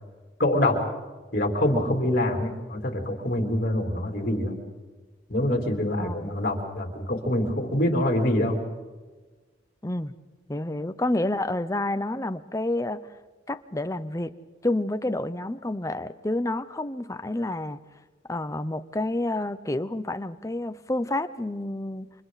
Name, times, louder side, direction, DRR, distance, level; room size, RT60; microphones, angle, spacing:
voice 1, 0.4-0.8 1.3-4.6 5.3-8.6, left 1 dB, 50° left, 2 dB, 3.5 m, -25 dB
voice 2, 6.0-6.4 9.8-10.2 10.5-13.0 13.5-14.3 14.6-17.8 18.3-22.1, left 1 dB, 15° left, 12 dB, 0.7 m, -29 dB
29.0 x 26.5 x 4.1 m, 1.3 s
head